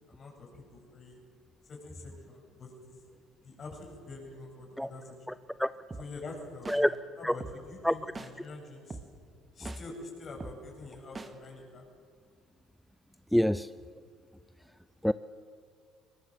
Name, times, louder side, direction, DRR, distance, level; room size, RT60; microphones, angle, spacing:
voice 1, 0.1-1.2 1.7-3.0 3.4-5.1 6.0-9.0 9.5-11.8, left 3 dB, 45° left, 1 dB, 7.8 m, -46 dB
voice 2, 5.3-5.7 6.7-6.9 7.2-7.3 7.8-7.9 9.6-9.7 13.3-13.7 15.0-15.1, equal, ahead, 15 dB, 0.5 m, -26 dB
sound 1, 5.9-6.0 6.7-6.8 7.4-7.5 8.2-8.3 8.9-9.0 9.7-9.8 10.4-10.5 11.2-11.3, right 3 dB, 25° right, 2.1 m, -40 dB
22.0 x 20.0 x 7.7 m, 2.2 s
supercardioid pair, 80°, 0 cm